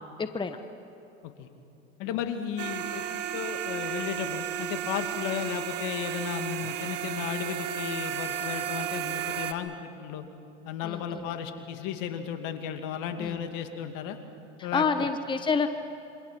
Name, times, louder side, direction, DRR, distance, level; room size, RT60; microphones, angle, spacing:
voice 1, 0.2-0.6 10.8-11.2 13.2-13.4 14.7-15.7, left 5 dB, 15° left, 8 dB, 1.1 m, -28 dB
voice 2, 2.0-10.2 10.6-14.2 14.6-14.9, left 8 dB, 60° left, 6 dB, 2.5 m, -34 dB
sound 1, 2.6-9.5, right 10 dB, 85° right, 1.3 m, -33 dB
27.0 x 25.0 x 6.1 m, 3.0 s
hypercardioid pair, 95°, 37 cm